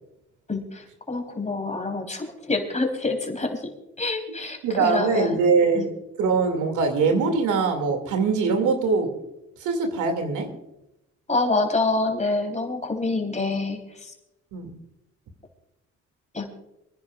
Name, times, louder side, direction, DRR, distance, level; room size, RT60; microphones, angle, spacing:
voice 1, 0.5-3.6 4.0-5.4 5.7-5.8 11.3-13.8 16.3-16.5, left 3 dB, 25° left, 3 dB, 3.7 m, -26 dB
voice 2, 4.6-5.9 6.2-9.1 9.6-10.5 14.5-14.7, right 4 dB, 85° right, 5 dB, 2.4 m, -22 dB
28.0 x 10.5 x 2.4 m, 0.88 s
cardioid pair, 90°, 30 cm